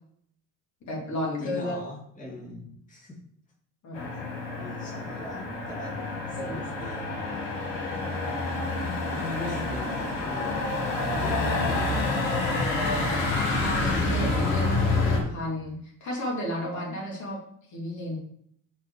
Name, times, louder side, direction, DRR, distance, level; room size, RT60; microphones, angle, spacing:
voice 1, 0.9-1.8 3.8-4.1 6.3-6.6 8.7-9.2 13.4-17.4 17.7-18.2, equal, 50° left, -3 dB, 3.1 m, -33 dB
voice 2, 1.4-3.2 4.1-4.2 4.6-7.1 9.1-10.7 11.1-12.5, left 2 dB, 20° left, -5 dB, 2.4 m, -41 dB
Motor vehicle (road), 3.9-15.2, left 2 dB, 85° left, 1.6 m, -28 dB
5.9 x 4.7 x 5.0 m, 0.68 s
hypercardioid pair, 75°, 37 cm